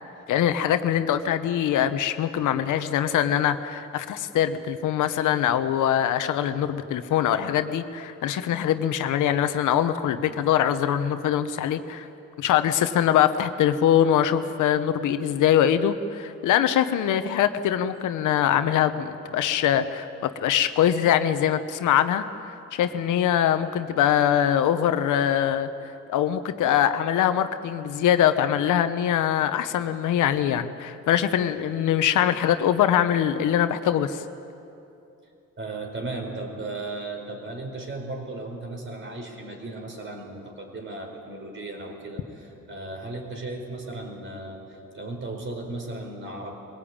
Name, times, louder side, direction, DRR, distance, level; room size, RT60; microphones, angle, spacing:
voice 1, 0.3-12.1 12.4-22.2 22.7-25.7 26.1-34.2, left 10 dB, 80° left, 10 dB, 1.1 m, -23 dB
voice 2, 35.6-46.6, right 2 dB, 40° right, 3 dB, 4.6 m, -36 dB
22.0 x 17.5 x 8.8 m, 2.7 s
cardioid pair, 90°, 30 cm